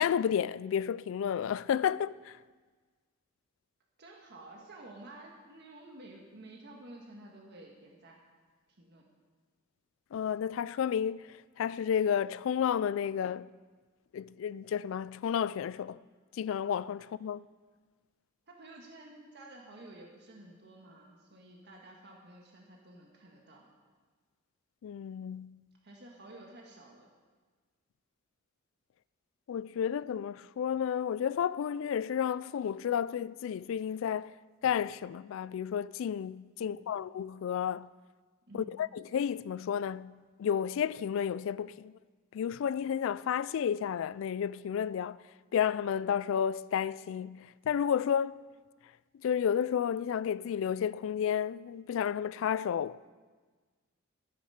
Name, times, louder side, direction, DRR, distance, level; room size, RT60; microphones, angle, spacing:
voice 1, 0.0-2.4 10.1-13.5 14.1-16.0 16.3-17.4 24.8-25.6 29.5-34.3 34.6-37.9 38.5-41.9 42.3-45.2 45.5-48.4 49.2-53.1, left 8 dB, 70° left, 0.3 m, -32 dB
voice 2, 4.0-8.2 8.8-9.0 18.5-23.6 25.8-27.1 36.7-36.8 38.5-38.8, right 2 dB, 55° right, 1.6 m, -51 dB
12.5 x 9.4 x 5.7 m
head